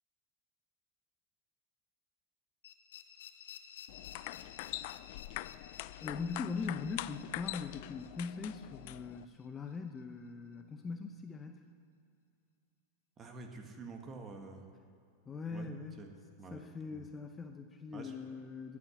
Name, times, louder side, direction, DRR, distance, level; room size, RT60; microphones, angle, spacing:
sound 1, 2.6-9.4, left 9 dB, 85° left, 0.9 m, -54 dB
sound 2, 3.9-9.2, left 16 dB, 60° left, 0.3 m, -44 dB
voice 1, 6.0-11.6 15.3-16.0 16.5-18.8, left 4 dB, 20° left, 5 dB, 0.7 m, -41 dB
voice 2, 13.2-14.7 15.5-15.7 16.0-16.1 16.4-17.1 17.9-18.1, right 4 dB, 25° right, 4 dB, 1.4 m, -48 dB
13.0 x 8.6 x 7.0 m, 2.4 s
supercardioid pair, 130°, 0 cm